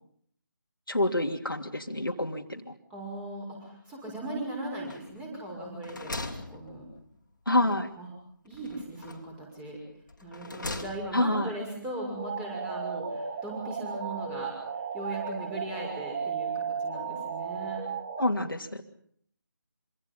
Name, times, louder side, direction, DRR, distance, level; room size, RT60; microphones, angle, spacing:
voice 1, 0.9-2.7 7.5-7.9 11.1-11.6 18.2-18.8, left 1 dB, 85° left, 3 dB, 2.9 m, -27 dB
voice 2, 2.9-6.9 8.0-8.1 8.4-9.8 10.2-14.5 14.9-17.8, right 1 dB, 10° right, 0 dB, 6.1 m, -38 dB
sound 1, 4.8-5.3 5.7-7.3 8.5-9.4 10.1-11.3, left 2 dB, 65° left, 2.8 m, -40 dB
sound 2, 12.2-18.3, right 6 dB, 30° right, 1.7 m, -35 dB
25.5 x 25.5 x 5.6 m, 0.63 s
figure-of-eight pair, 155°, 11 cm